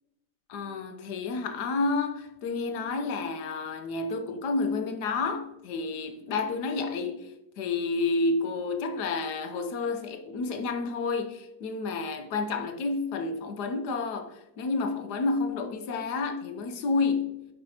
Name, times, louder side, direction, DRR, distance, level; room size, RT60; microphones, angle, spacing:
voice 1, 0.5-17.4, left 3 dB, 80° left, 1.4 m, -30 dB
9.7 x 5.3 x 2.9 m
omnidirectional pair, 1.7 m